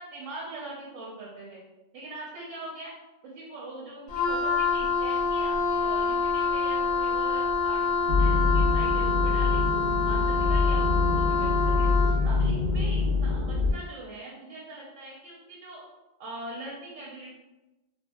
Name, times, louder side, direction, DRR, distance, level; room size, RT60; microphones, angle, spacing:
voice 1, 0.0-1.6 1.9-2.9 3.2-9.7 10.0-11.9 12.2-15.8 16.2-17.3, right 2 dB, 80° right, -5 dB, 1.0 m, -42 dB
Wind instrument woodwind instrument, 4.1-12.2, left 4 dB, 70° left, 1.3 m, -26 dB
sound 1, 8.1-13.7, left 3 dB, 45° right, 0.7 m, -25 dB
2.7 x 2.6 x 2.2 m, 1.0 s
omnidirectional pair, 1.2 m